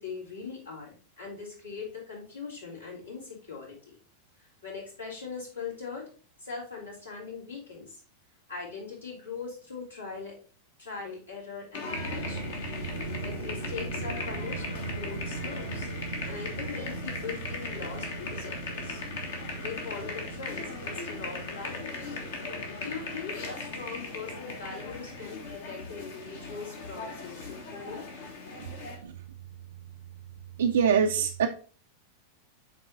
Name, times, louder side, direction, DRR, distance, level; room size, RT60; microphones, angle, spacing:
voice 1, 0.0-4.0 4.4-6.1 6.4-8.0 8.5-10.4 10.8-12.5 13.2-15.9 16.2-19.0 19.6-22.2 22.8-28.1, left 5 dB, 80° left, -5 dB, 3.5 m, -41 dB
sound 1, 11.7-29.0, left 3 dB, 55° left, 1.5 m, -38 dB
sound 2, 11.8-30.6, right 4 dB, 85° right, 1.0 m, -41 dB
voice 2, 30.6-31.5, right 7 dB, 65° right, 3 dB, 0.5 m, -23 dB
8.2 x 3.6 x 4.0 m, 0.40 s
figure-of-eight pair, 90°, 0 cm